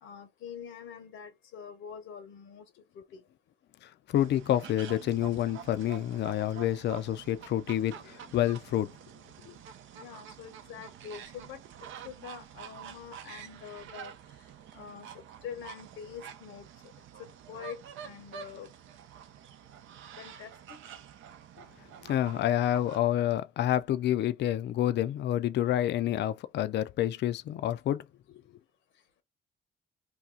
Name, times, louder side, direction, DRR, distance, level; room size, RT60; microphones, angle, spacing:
voice 1, 0.0-2.6 3.1-3.2 9.9-11.6 12.0-14.1 14.7-16.6 17.5-18.7 20.2-20.8, left 7 dB, 85° left, 1.1 m, -45 dB
voice 2, 4.1-8.9 9.5-9.6 22.0-28.0, left 12 dB, 60° left, 0.4 m, -28 dB
sound 1, 4.1-23.0, right 9 dB, 80° right, 0.6 m, -48 dB
2.8 x 2.3 x 3.6 m
cardioid pair, 90°, 20 cm